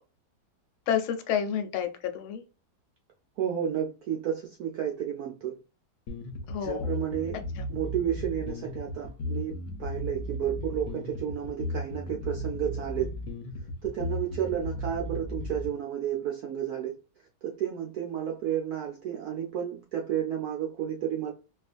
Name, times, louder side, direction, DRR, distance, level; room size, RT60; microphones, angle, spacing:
voice 1, 0.9-2.4 6.5-6.9 7.6-7.7, left 8 dB, 85° left, 1.4 m, -29 dB
voice 2, 3.4-5.6 6.6-7.4 7.7-9.5 9.8-13.1 13.8-17.0 17.4-21.3, right 10 dB, 80° right, 0.8 m, -31 dB
sound 1, 6.1-15.7, left 1 dB, 60° left, 1.0 m, -35 dB
4.7 x 2.4 x 2.5 m
omnidirectional pair, 2.2 m